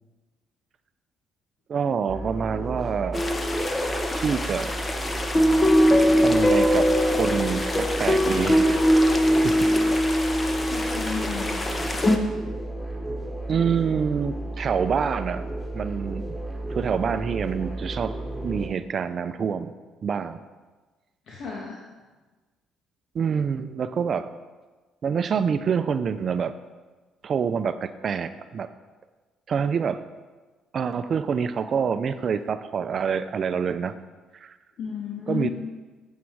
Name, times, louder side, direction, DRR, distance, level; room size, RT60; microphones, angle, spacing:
voice 1, 1.7-3.3 4.2-4.7 6.2-8.8 9.4-9.5 13.5-15.5 15.7-16.4 16.7-18.1 18.4-19.7 20.0-20.4 23.1-24.3 25.0-26.5 27.2-28.7 29.5-30.0 30.7-34.0 34.3-34.5 35.3-35.5, right 6 dB, 50° right, 12 dB, 0.5 m, -26 dB
sound 1, 2.1-18.7, right 1 dB, 10° right, 2.1 m, -33 dB
sound 2, 3.1-12.2, equal, 25° left, 1.0 m, -22 dB
voice 2, 10.7-12.1 21.3-21.8 34.8-35.5, left 6 dB, 65° left, -3 dB, 1.8 m, -33 dB
8.5 x 8.1 x 4.7 m, 1.3 s
supercardioid pair, 75°, 0 cm